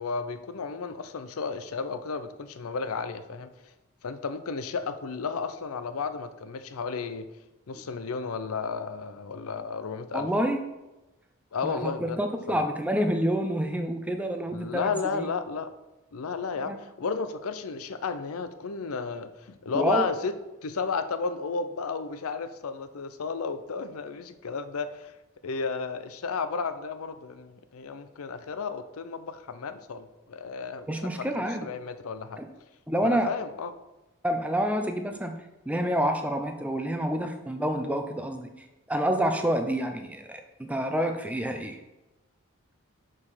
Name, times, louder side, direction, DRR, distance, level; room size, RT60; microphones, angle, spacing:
voice 1, 0.0-3.5 4.0-7.3 7.7-10.3 11.5-12.2 12.5-12.6 14.5-15.7 16.1-20.3 20.6-25.1 25.4-31.3 31.6-32.4 33.0-33.8, left 5 dB, 85° left, 11 dB, 0.5 m, -33 dB
voice 2, 10.1-10.6 11.6-15.3 16.7-16.8 19.7-20.0 30.9-31.7 32.4-32.5 32.9-33.3 34.2-35.3 35.7-38.5 38.9-41.8, equal, 5° right, 5 dB, 0.5 m, -28 dB
6.5 x 4.9 x 5.6 m, 1.0 s
head